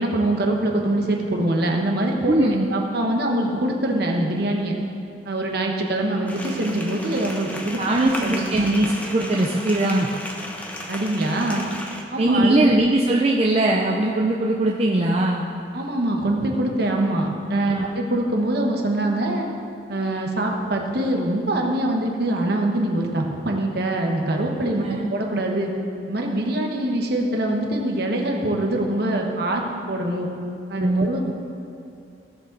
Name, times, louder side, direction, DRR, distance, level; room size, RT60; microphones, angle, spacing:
voice 1, 0.0-4.7 5.2-8.7 10.9-11.7 12.1-12.7 15.7-19.5 19.9-25.7 26.1-30.3 30.7-31.3, right 1 dB, 55° right, 1 dB, 1.3 m, -24 dB
voice 2, 2.3-2.7 7.8-10.1 12.2-15.4 17.6-17.9 24.8-25.1 30.8-31.3, right 1 dB, 30° right, -1 dB, 0.5 m, -21 dB
sound 1, 6.3-12.0, left 1 dB, 10° left, 0.8 m, -34 dB
16.5 x 6.8 x 4.0 m, 2.6 s
head